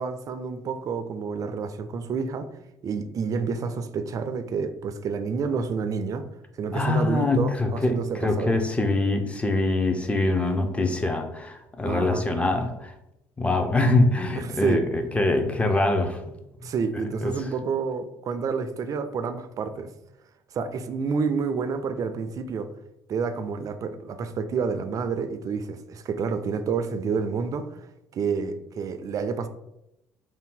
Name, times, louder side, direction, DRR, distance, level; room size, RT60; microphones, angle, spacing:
voice 1, 0.0-2.5 2.8-6.3 6.6-8.5 11.8-12.3 14.4-14.8 16.6-19.9 20.5-22.7 23.1-27.9 28.1-29.5, right 5 dB, 45° right, 9 dB, 0.4 m, -29 dB
voice 2, 6.7-12.9 13.4-16.2 17.2-17.5, left 2 dB, 15° left, 5 dB, 0.5 m, -24 dB
2.6 x 2.1 x 3.6 m, 0.86 s
supercardioid pair, 75°, 8 cm